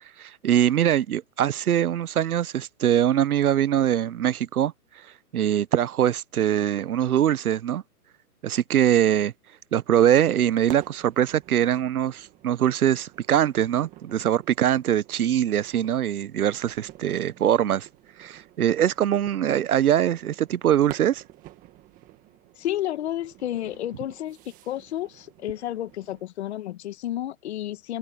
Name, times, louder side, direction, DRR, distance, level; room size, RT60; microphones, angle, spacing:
voice 1, 0.2-4.7 5.3-7.8 8.4-9.3 9.7-17.9 18.2-21.2, right 10 dB, 70° right, 1.0 m, -22 dB
sound 1, 10.3-26.3, right 16 dB, 15° right, 1.7 m, -49 dB
voice 2, 22.6-24.4 24.7-28.0, left 13 dB, 45° left, 1.3 m, -31 dB
open air
hypercardioid pair, 155°, 46 cm